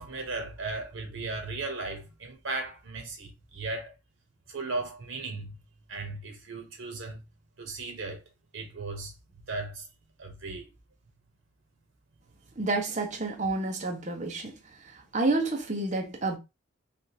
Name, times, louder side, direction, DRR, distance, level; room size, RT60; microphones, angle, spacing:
voice 1, 0.0-4.0 4.5-5.6 5.9-7.2 7.6-8.2 8.5-9.1 9.4-9.9 10.2-10.7, right 3 dB, 85° right, 1.0 m, -36 dB
voice 2, 12.6-14.5 14.9-16.4, right 2 dB, 40° right, 0.8 m, -29 dB
3.4 x 2.5 x 2.8 m
head